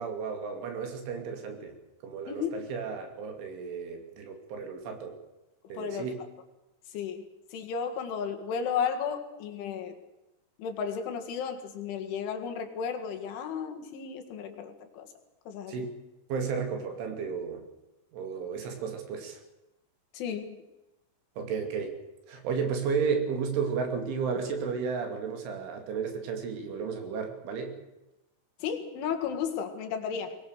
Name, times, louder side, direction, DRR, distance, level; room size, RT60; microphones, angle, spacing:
voice 1, 0.0-1.7 2.0-5.2 5.7-6.2 15.7-16.0 16.3-17.6 18.1-19.4 21.4-21.9 22.3-27.8, right 5 dB, 75° right, 5 dB, 5.2 m, -33 dB
voice 2, 5.7-6.1 6.9-7.2 7.5-9.9 10.6-15.1 15.5-15.9 20.1-20.6 28.6-30.4, left 7 dB, 75° left, 5 dB, 4.3 m, -33 dB
23.0 x 20.0 x 6.6 m, 0.98 s
omnidirectional pair, 5.7 m